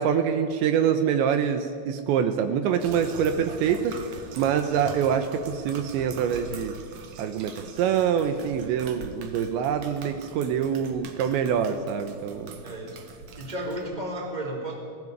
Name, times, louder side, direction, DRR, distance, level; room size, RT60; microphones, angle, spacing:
voice 1, 0.0-4.0 4.4-6.8 7.2-12.6, right 8 dB, 75° right, 8 dB, 3.2 m, -25 dB
sound 1, 2.8-13.9, right 5 dB, 60° right, 2.0 m, -42 dB
voice 2, 12.6-13.0 13.4-14.7, right 1 dB, 10° right, 1 dB, 3.4 m, -33 dB
21.0 x 16.5 x 9.7 m, 2.2 s
omnidirectional pair, 5.4 m